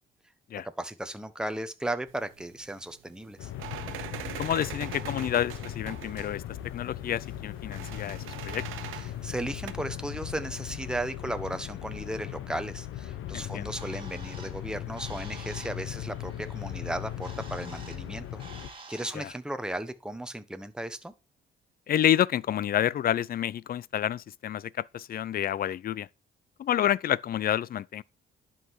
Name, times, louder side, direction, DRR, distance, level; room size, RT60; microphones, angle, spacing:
voice 1, 0.8-3.5 9.0-18.4 18.9-21.1, right 1 dB, 5° right, 1.1 m, -35 dB
sound 1, 2.1-9.7, right 11 dB, 85° right, 1.2 m, -43 dB
sound 2, 3.4-18.7, left 12 dB, 85° left, 1.0 m, -38 dB
voice 2, 4.4-8.6 13.3-13.7 19.1-19.3 21.9-26.1 26.6-28.0, left 11 dB, 50° left, 0.5 m, -29 dB
Bird, 13.4-19.3, right 3 dB, 25° right, 2.7 m, -50 dB
11.0 x 5.7 x 4.7 m
cardioid pair, 90°, 20 cm